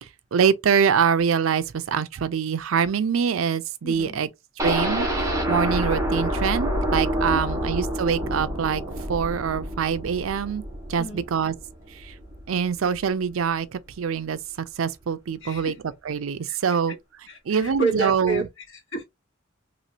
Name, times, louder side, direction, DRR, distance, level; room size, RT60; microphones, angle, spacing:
voice 1, 0.0-4.3 4.6-8.8 9.1-10.6 10.9-11.5 11.9-12.1 12.5-16.9 17.5-18.5, right 7 dB, 80° right, 0.4 m, -24 dB
voice 2, 3.8-4.2 7.3-7.4 11.0-11.3 15.4-15.8 16.5-16.8 17.3-19.0, right 3 dB, 65° left, 1.7 m, -30 dB
sound 1, 4.6-12.5 12.8-12.9 13.3-13.4, right 1 dB, 15° right, 0.9 m, -27 dB
sound 2, 11.7-11.9, right 2 dB, 45° right, 0.8 m, -47 dB
3.0 x 2.9 x 2.6 m
head